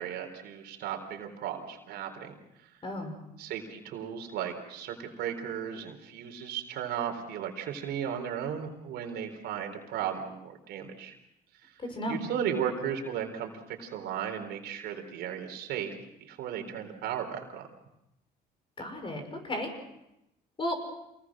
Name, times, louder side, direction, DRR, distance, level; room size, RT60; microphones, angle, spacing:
voice 1, 0.0-2.4 3.4-11.1 11.6-11.7 12.1-15.9 16.2-17.7, right 8 dB, 80° right, 5 dB, 3.9 m, -35 dB
voice 2, 18.8-19.7 20.6-20.7, left 1 dB, 30° left, 5 dB, 6.4 m, -33 dB
28.0 x 20.0 x 6.3 m, 0.87 s
cardioid pair, 110°, 17 cm